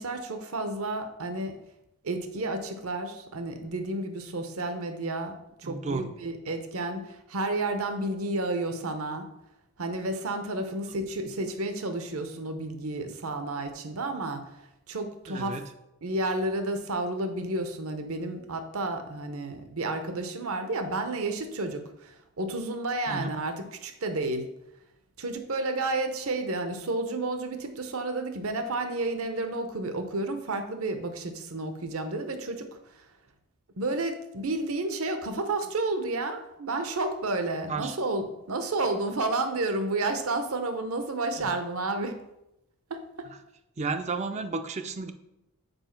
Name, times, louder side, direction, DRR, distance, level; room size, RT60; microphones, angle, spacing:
voice 1, 0.0-1.6 2.0-9.3 9.8-14.4 14.9-15.6 16.0-24.5 25.2-33.0 33.8-42.2 42.9-43.3, right 2 dB, 70° right, 7 dB, 0.9 m, -31 dB
voice 2, 5.6-6.1 15.3-15.6 23.1-23.4 37.7-38.0 41.4-41.5 43.3-43.4 43.8-45.1, right 3 dB, 30° right, 8 dB, 0.4 m, -33 dB
5.3 x 4.7 x 5.8 m, 0.88 s
head